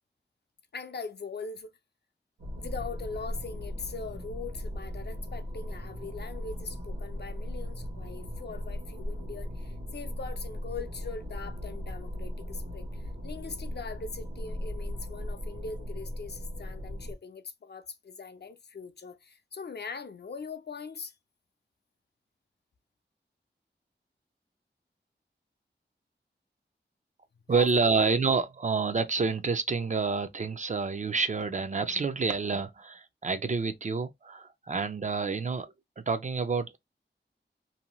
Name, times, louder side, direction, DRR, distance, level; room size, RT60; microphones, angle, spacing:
voice 1, 0.7-1.8 2.6-21.2 27.5-28.1, left 4 dB, 60° left, 0.5 m, -41 dB
sound 1, 2.4-17.1, left 1 dB, 90° right, 0.9 m, -38 dB
voice 2, 27.5-36.8, right 4 dB, 40° right, 0.4 m, -28 dB
2.7 x 2.2 x 2.9 m
wide cardioid pair, 80°, 19 cm